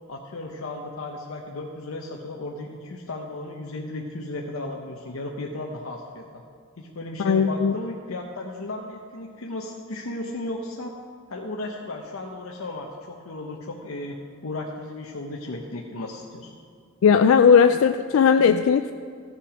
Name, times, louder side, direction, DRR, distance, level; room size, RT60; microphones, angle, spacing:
voice 1, 0.1-6.4 6.8-11.0 11.3-14.2 14.4-16.5, left 2 dB, 90° left, 0 dB, 0.8 m, -35 dB
voice 2, 7.2-7.7 17.0-18.9, left 6 dB, 70° left, 8 dB, 0.3 m, -17 dB
15.0 x 5.8 x 5.0 m, 2.2 s
head